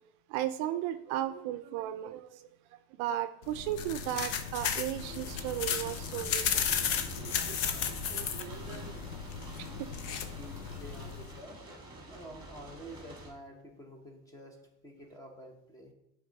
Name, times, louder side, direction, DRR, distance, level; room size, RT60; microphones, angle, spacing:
voice 1, 0.3-6.7 7.2-8.9 9.6-9.9 11.0-11.1, right 12 dB, 55° right, 0.5 m, -36 dB
sound 1, 3.4-11.3, left 8 dB, 65° left, 0.8 m, -34 dB
sound 2, 4.9-13.3, right 2 dB, 10° right, 1.5 m, -48 dB
voice 2, 10.0-11.6 12.1-14.6 14.8-15.9, equal, 10° left, 0.8 m, -49 dB
9.8 x 3.6 x 3.9 m
cardioid pair, 175°, 35 cm